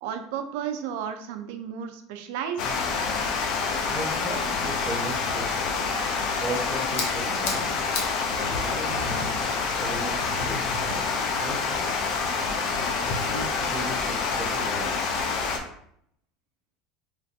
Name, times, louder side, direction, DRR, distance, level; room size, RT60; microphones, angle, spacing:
voice 1, 0.0-2.6, right 8 dB, 75° right, 6 dB, 0.4 m, -33 dB
Water, 2.6-15.6, left 4 dB, 50° left, 0.5 m, -27 dB
voice 2, 3.4-5.8 6.4-7.7 8.3-15.2, right 1 dB, 5° left, -5 dB, 0.8 m, -38 dB
sound 1, 6.7-11.1, left 3 dB, 85° left, 0.8 m, -39 dB
3.1 x 2.5 x 2.6 m, 0.69 s
supercardioid pair, 145°, 0 cm